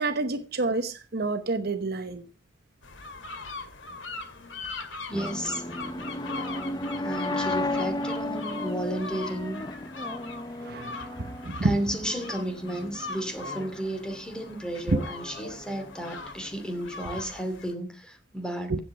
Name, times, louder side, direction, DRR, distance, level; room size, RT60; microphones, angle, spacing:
voice 1, 0.0-2.3 10.6-11.7 14.9-15.0 18.7-18.8, right 3 dB, 55° right, 1.0 m, -28 dB
sound 1, 2.8-17.7, left 3 dB, 80° left, 2.3 m, -41 dB
voice 2, 4.1-4.6 5.1-5.7 6.9-9.6 11.6-18.8, right 1 dB, 5° left, 2.5 m, -33 dB
sound 2, 5.1-17.0, left 2 dB, 20° left, 0.8 m, -35 dB
15.0 x 8.2 x 4.8 m
head